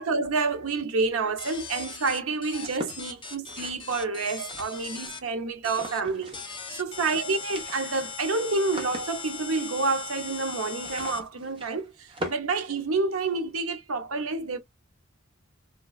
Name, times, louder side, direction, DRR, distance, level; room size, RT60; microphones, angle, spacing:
voice 1, 0.0-14.6, right 3 dB, 90° right, 0.7 m, -29 dB
sound 1, 1.4-5.2 5.6-6.0 6.3-11.2, left 5 dB, 25° left, 0.6 m, -39 dB
sound 2, 2.6-5.1 5.7-6.6 6.8-6.9 7.2-13.4, equal, 25° right, 0.9 m, -42 dB
3.1 x 2.3 x 2.3 m
head